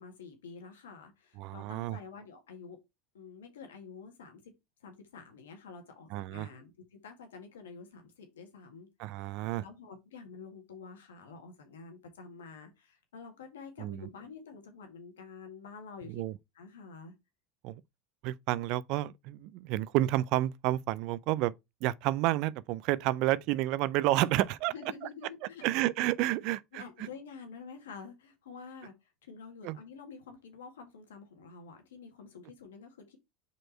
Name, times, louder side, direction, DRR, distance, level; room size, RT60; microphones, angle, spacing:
voice 1, 0.0-2.8 3.1-4.5 4.8-8.9 9.2-16.2 16.6-17.1 24.7-25.7 26.4-33.2, left 5 dB, 85° left, 1.8 m, -49 dB
voice 2, 1.4-2.0 6.1-6.5 9.0-9.6 13.8-14.1 16.1-16.3 17.6-17.8 18.2-21.5 21.8-24.7 25.6-26.8 29.6-29.8, right 16 dB, 60° right, 0.5 m, -30 dB
5.2 x 4.4 x 4.4 m
hypercardioid pair, 85°, 0 cm